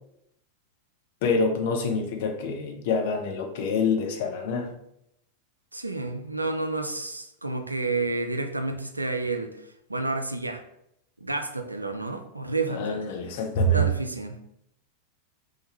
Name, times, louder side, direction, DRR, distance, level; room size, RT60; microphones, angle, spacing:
voice 1, 1.2-4.7 12.7-13.9, left 2 dB, 50° left, 3 dB, 0.5 m, -26 dB
voice 2, 5.7-9.5 9.9-10.6 11.2-13.0 13.7-14.4, right 3 dB, 85° right, 6 dB, 0.3 m, -30 dB
3.2 x 2.2 x 3.0 m, 0.77 s
figure-of-eight pair, 90°, 0 cm